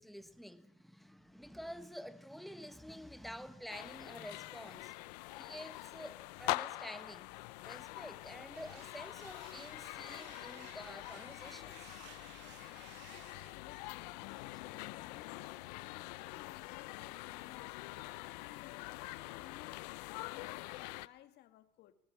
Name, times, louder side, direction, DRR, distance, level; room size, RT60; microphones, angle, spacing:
voice 1, 0.0-4.9 5.3-7.3 7.6-12.0 14.5-14.6, equal, ahead, 1.4 m, -49 dB
sound 1, 3.7-21.1, left 21 dB, 80° left, 0.8 m, -45 dB
sound 2, 8.5-13.5, right 13 dB, 60° right, 2.1 m, -58 dB
voice 2, 12.4-19.9 20.3-21.9, left 13 dB, 55° left, 1.9 m, -58 dB
19.5 x 19.0 x 7.3 m
supercardioid pair, 120°, 21 cm